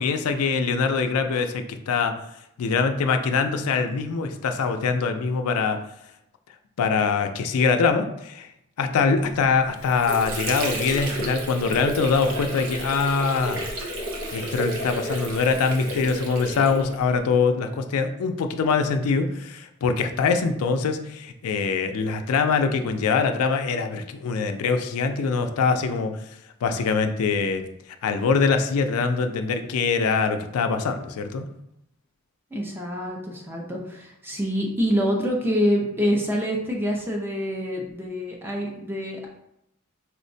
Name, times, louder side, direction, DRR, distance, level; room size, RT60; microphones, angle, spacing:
voice 1, 0.0-2.2 2.6-5.8 6.8-8.5 8.8-13.7 14.3-26.2 26.6-27.7 28.0-31.5, left 5 dB, 80° left, 7 dB, 0.4 m, -23 dB
Water / Sink (filling or washing), 9.5-17.2, right 1 dB, 70° right, 0.6 m, -32 dB
voice 2, 32.5-39.3, equal, 10° right, -1 dB, 0.5 m, -26 dB
4.4 x 2.1 x 2.6 m, 0.80 s
head